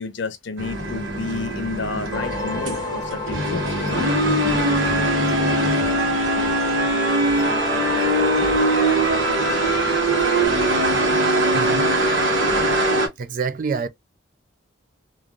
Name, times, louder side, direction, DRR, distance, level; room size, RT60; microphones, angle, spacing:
voice 1, 0.0-4.1, left 4 dB, 65° left, 0.6 m, -31 dB
sound 1, 0.6-13.1, right 1 dB, 75° right, 1.2 m, -21 dB
sound 2, 2.1-10.5, equal, 20° left, 0.8 m, -30 dB
voice 2, 11.5-11.9 13.2-13.9, right 5 dB, 45° right, 0.3 m, -26 dB
3.1 x 2.5 x 2.4 m
head